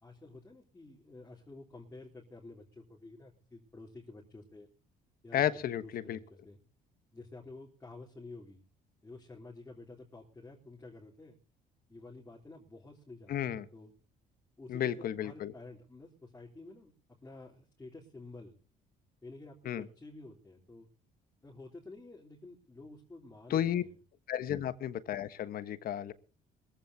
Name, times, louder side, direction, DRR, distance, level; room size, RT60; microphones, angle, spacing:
voice 1, 0.0-4.7 5.2-6.6 7.1-8.6 9.0-11.4 11.9-13.9 14.6-16.9 17.2-18.6 19.2-20.9 21.4-23.9 24.4-24.6, left 2 dB, 15° left, -3 dB, 3.5 m, -51 dB
voice 2, 5.3-6.2 13.3-13.6 14.7-15.5 19.6-19.8 23.5-23.8 24.3-26.1, left 10 dB, 60° left, 13 dB, 1.3 m, -33 dB
22.0 x 15.0 x 2.8 m, 0.39 s
cardioid pair, 110°, 17 cm